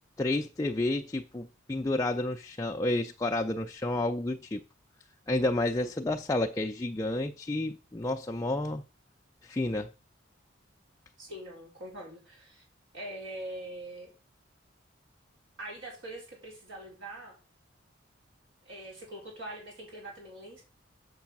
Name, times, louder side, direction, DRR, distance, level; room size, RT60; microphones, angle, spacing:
voice 1, 0.2-4.6 5.3-8.8 9.4-9.9, left 2 dB, 15° left, 0.4 m, -30 dB
voice 2, 11.2-12.6 12.9-14.1 15.6-17.3 18.7-20.6, right 1 dB, 75° right, 3.8 m, -43 dB
7.2 x 6.1 x 5.8 m
head